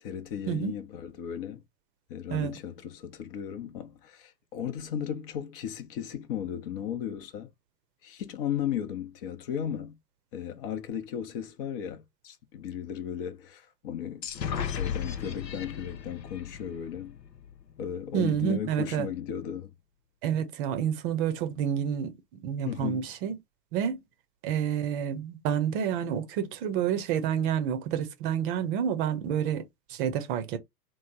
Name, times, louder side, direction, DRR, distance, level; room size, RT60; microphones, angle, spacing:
voice 1, 0.0-1.6 2.1-7.5 8.0-10.0 10.3-17.2 17.8-19.7 22.6-23.1, left 9 dB, 35° left, 0.8 m, -35 dB
sound 1, 14.2-17.9, left 8 dB, 80° left, 0.7 m, -36 dB
voice 2, 18.1-19.1 20.2-22.1 22.4-23.4 23.7-24.0 24.4-29.6 29.9-30.6, right 9 dB, 35° right, 0.7 m, -29 dB
3.1 x 2.1 x 3.8 m
figure-of-eight pair, 105°, 50 cm